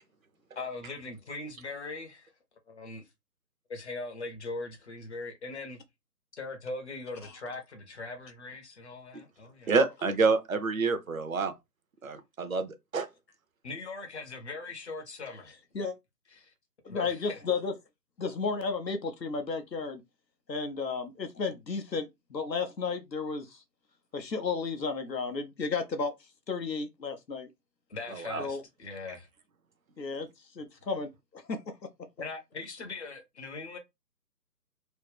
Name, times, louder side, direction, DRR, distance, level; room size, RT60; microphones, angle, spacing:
voice 1, 0.6-2.3 2.7-3.0 3.7-5.8 6.4-9.7 13.6-15.5 16.3-16.5 16.9-17.4 27.9-29.3 32.2-33.8, left 3 dB, 45° left, 0.8 m, -40 dB
voice 2, 9.7-11.5 12.0-13.1 28.2-28.4, right 4 dB, 55° right, 0.7 m, -27 dB
voice 3, 16.8-17.7 18.2-20.0 20.5-23.6 24.1-26.1 26.5-27.5 28.4-28.6 30.0-30.3 30.6-31.6, left 4 dB, 85° left, 0.9 m, -33 dB
3.1 x 2.1 x 3.3 m
figure-of-eight pair, 145°, 49 cm